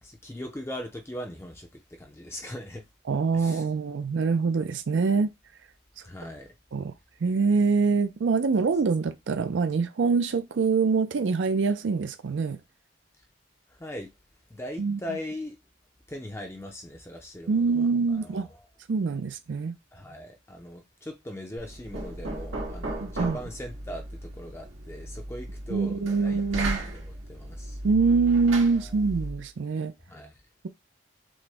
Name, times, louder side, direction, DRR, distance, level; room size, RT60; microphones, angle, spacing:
voice 1, 0.0-2.9 3.3-3.8 6.0-6.6 13.7-14.1 14.5-15.6 16.1-18.7 19.9-27.8 28.7-28.9 30.1-30.4, left 1 dB, 15° left, 0.5 m, -40 dB
voice 2, 3.1-5.3 6.7-6.9 7.2-12.6 14.8-15.0 17.5-18.5 18.9-19.8 23.0-23.4 25.7-26.8 27.8-29.9, right 4 dB, 75° right, 0.4 m, -24 dB
Knock, 21.6-29.5, right 1 dB, 90° right, 1.5 m, -36 dB
6.2 x 2.1 x 3.4 m
head